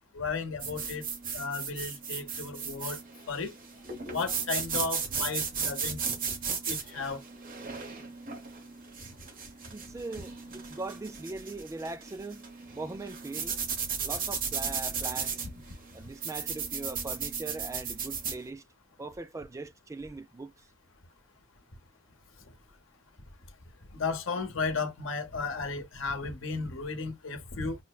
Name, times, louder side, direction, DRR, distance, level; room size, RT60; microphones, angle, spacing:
voice 1, 0.1-1.0 1.3-3.0 3.3-3.5 4.1-6.0 6.7-7.2 23.9-27.8, left 4 dB, 70° left, 0.9 m, -34 dB
sound 1, 0.6-18.4, right 6 dB, 45° right, 0.9 m, -35 dB
voice 2, 9.7-12.4 12.7-13.6 14.0-15.4 15.9-18.6 19.0-20.5, right 3 dB, 15° right, 0.3 m, -40 dB
5.6 x 2.1 x 2.2 m
head